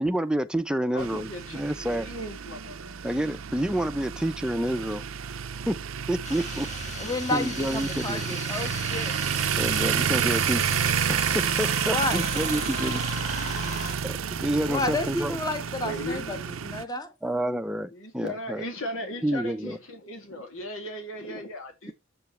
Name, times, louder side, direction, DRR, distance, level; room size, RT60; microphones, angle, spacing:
voice 1, 0.0-2.1 3.0-5.1 5.7-5.8 6.1-6.7 7.3-8.2 9.5-10.7 11.3-13.1 14.0-15.4 17.2-18.6 19.2-19.8, right 1 dB, 5° right, 0.6 m, -29 dB
voice 2, 0.9-1.6 2.0-3.0 12.3-12.5 15.8-16.6 17.9-21.9, equal, 75° left, 2.5 m, -37 dB
sound 1, 1.0-16.8, right 7 dB, 85° right, 0.6 m, -30 dB
sound 2, 6.2-13.9, left 4 dB, 35° left, 1.7 m, -37 dB
voice 3, 7.0-9.1 11.9-12.2 14.7-17.1, left 2 dB, 20° left, 1.3 m, -31 dB
8.1 x 7.9 x 3.2 m
head